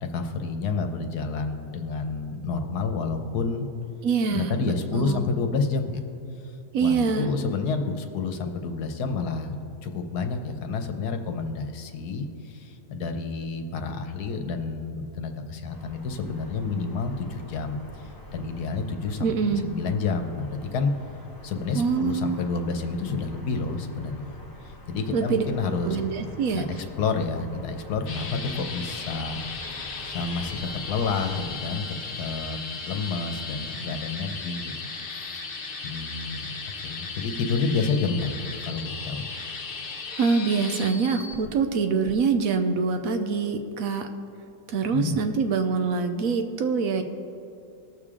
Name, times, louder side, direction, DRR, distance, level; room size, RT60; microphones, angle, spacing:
voice 1, 0.0-3.7 4.3-6.0 6.8-9.6 9.8-19.3 19.6-20.9 21.4-24.4 24.6-29.4 30.0-34.9 35.2-35.4 35.8-36.5 36.8-39.3 44.9-45.2, left 4 dB, 75° left, 6 dB, 1.4 m, -29 dB
voice 2, 4.0-5.2 6.7-7.3 19.2-19.6 21.7-22.4 25.1-25.4 25.8-26.6 39.3-39.5 40.2-44.1 44.7-47.0, right 5 dB, 65° right, 7 dB, 1.0 m, -25 dB
sound 1, 15.7-31.5, left 1 dB, 20° left, 0.7 m, -45 dB
sound 2, 28.1-41.5 42.1-42.2, left 4 dB, 50° left, 1.2 m, -36 dB
19.0 x 6.8 x 3.7 m, 2.7 s
omnidirectional pair, 1.7 m